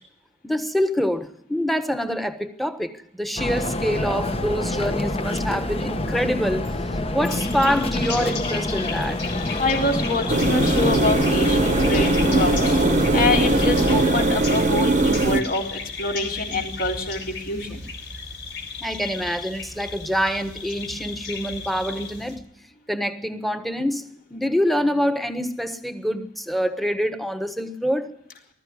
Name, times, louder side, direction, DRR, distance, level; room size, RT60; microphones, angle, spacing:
voice 1, 0.4-6.7 7.1-9.3 18.8-22.4 22.9-28.2, equal, ahead, 1.3 m, -25 dB
sound 1, 3.4-14.2, left 1 dB, 35° left, 1.1 m, -27 dB
sound 2, 7.3-22.4, left 4 dB, 75° left, 3.9 m, -35 dB
voice 2, 9.6-12.8 13.1-17.8, left 2 dB, 55° left, 3.7 m, -25 dB
sound 3, 10.3-15.4, right 2 dB, 45° right, 0.9 m, -20 dB
20.0 x 14.0 x 9.6 m
head